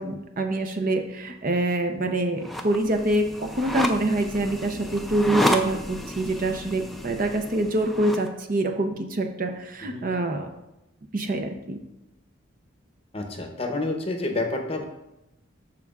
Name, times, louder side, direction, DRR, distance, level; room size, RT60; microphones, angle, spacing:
voice 1, 0.0-10.5 11.1-11.8, right 1 dB, 40° right, 5 dB, 0.6 m, -25 dB
sound 1, 2.4-8.3, equal, ahead, 0.4 m, -31 dB
voice 2, 13.1-14.9, left 2 dB, 30° left, 3 dB, 0.8 m, -28 dB
12.5 x 4.6 x 2.4 m, 0.91 s
head